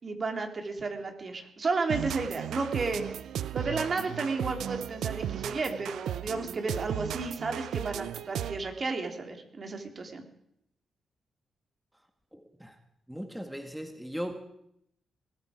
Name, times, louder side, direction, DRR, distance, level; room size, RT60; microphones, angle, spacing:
voice 1, 0.0-3.2 3.5-10.2, right 3 dB, 45° right, 4 dB, 3.0 m, -33 dB
sound 1, 1.9-8.8, right 11 dB, 85° right, 0.5 m, -35 dB
voice 2, 12.3-12.8 13.1-14.4, equal, 5° right, 6 dB, 1.8 m, -38 dB
21.0 x 13.0 x 5.1 m, 0.76 s
cardioid pair, 65°, 0 cm